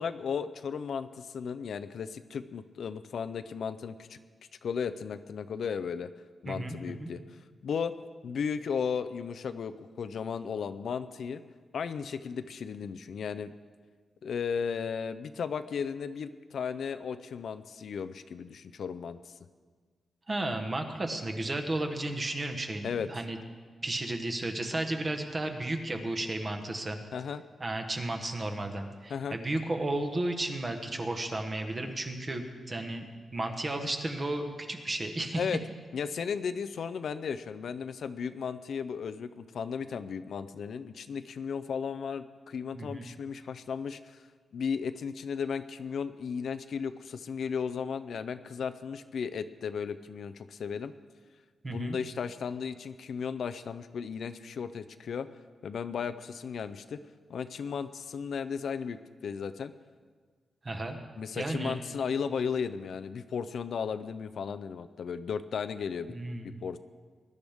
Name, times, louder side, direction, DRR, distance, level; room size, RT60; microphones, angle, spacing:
voice 1, 0.0-4.2 4.6-6.1 6.4-7.9 8.2-11.4 11.7-13.5 14.2-19.3 22.8-23.1 27.1-27.4 29.1-29.4 35.4-35.6 35.9-44.2 44.5-50.9 51.7-55.3 55.6-57.0 57.3-59.0 59.2-59.7 61.2-66.1 66.4-66.8, left 6 dB, 65° left, 12 dB, 0.5 m, -35 dB
voice 2, 6.4-7.1 20.3-23.4 23.8-27.0 27.6-35.5 42.7-43.1 51.6-52.0 60.6-61.0 61.4-61.8 66.1-66.5, right 2 dB, 25° right, 5 dB, 1.2 m, -33 dB
20.0 x 11.5 x 3.6 m, 1.6 s
wide cardioid pair, 160°, 0 cm